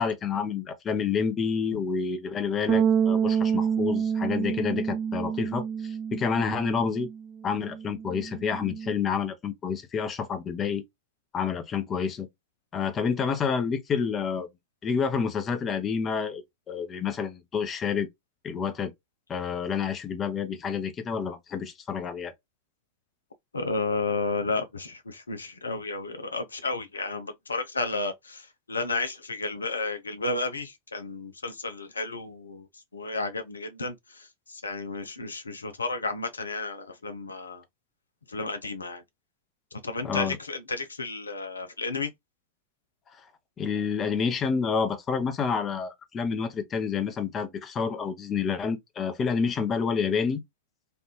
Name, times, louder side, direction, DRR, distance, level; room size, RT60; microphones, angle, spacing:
voice 1, 0.0-7.1 7.4-10.8 11.3-12.3 12.7-14.5 14.8-16.4 16.7-18.1 18.4-18.9 19.3-22.3 40.0-40.4 43.6-50.4, left 6 dB, 25° left, 0.7 m, -29 dB
Bass guitar, 2.7-8.9, right 7 dB, 25° right, 0.6 m, -28 dB
voice 2, 23.5-32.7 32.9-37.6 38.3-39.0 39.8-42.1, left 3 dB, 75° left, 0.6 m, -32 dB
3.3 x 2.5 x 2.8 m
figure-of-eight pair, 90°, 0 cm